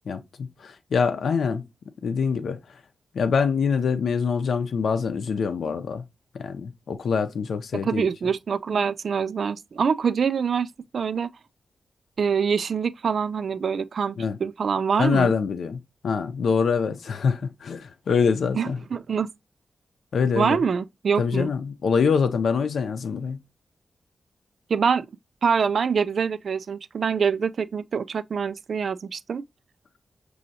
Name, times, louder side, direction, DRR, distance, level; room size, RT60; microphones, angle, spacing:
voice 1, 0.1-1.6 2.0-2.6 3.1-6.0 6.3-8.1 14.2-14.4 15.0-15.8 16.0-18.8 20.1-20.6 21.2-23.4, left 5 dB, 90° left, 0.5 m, -24 dB
voice 2, 7.8-11.3 12.2-15.3 18.5-19.3 20.3-21.5 24.7-25.1 25.4-29.4, right 6 dB, 65° right, 0.3 m, -25 dB
6.2 x 2.7 x 2.7 m
wide cardioid pair, 125°, 0 cm